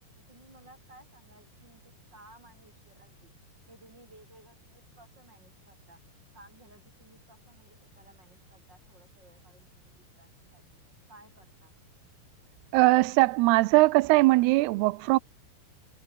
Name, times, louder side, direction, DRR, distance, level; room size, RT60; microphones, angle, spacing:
voice 1, 0.3-3.3 3.7-6.0 6.3-10.6 11.1-11.7, right 1 dB, 25° right, 5.4 m, -57 dB
voice 2, 12.7-15.2, right 21 dB, 85° right, 2.6 m, -21 dB
omnidirectional pair, 4.6 m